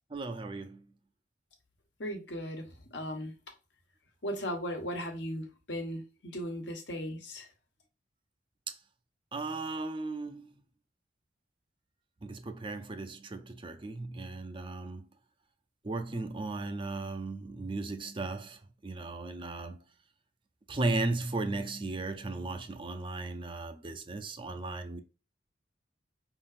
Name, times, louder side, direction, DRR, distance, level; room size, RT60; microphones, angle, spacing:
voice 1, 0.1-0.9 8.7-8.8 9.3-10.6 12.2-15.1 15.8-19.8 20.7-25.0, right 2 dB, 30° right, 0.5 m, -36 dB
voice 2, 2.0-2.6 2.9-3.3 4.2-7.5, equal, 65° left, 1.3 m, -37 dB
5.0 x 3.8 x 2.5 m
head